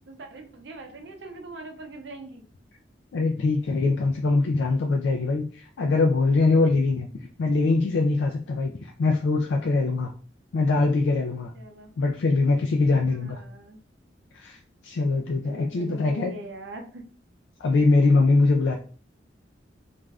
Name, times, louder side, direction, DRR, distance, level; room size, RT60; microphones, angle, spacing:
voice 1, 0.1-2.4 11.5-11.9 13.1-13.8 15.4-17.0, right 1 dB, 75° right, 3 dB, 0.6 m, -42 dB
voice 2, 3.1-7.1 7.4-10.1 10.5-11.5 12.0-13.4 14.3-16.3 17.6-18.8, left 3 dB, 90° left, 2 dB, 0.4 m, -22 dB
2.5 x 2.3 x 3.3 m, 0.41 s
head